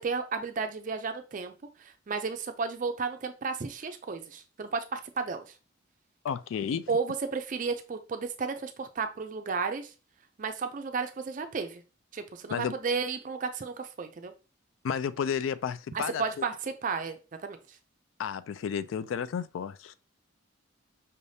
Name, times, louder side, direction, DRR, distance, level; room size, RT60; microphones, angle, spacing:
voice 1, 0.0-1.5 1.8-5.4 6.9-9.9 10.4-11.8 12.1-14.3 15.9-17.6, right 5 dB, 40° right, 0.4 m, -33 dB
voice 2, 6.2-6.9 12.5-12.7 14.8-16.4 18.2-19.9, left 7 dB, 80° left, 0.3 m, -32 dB
5.5 x 3.3 x 2.7 m
head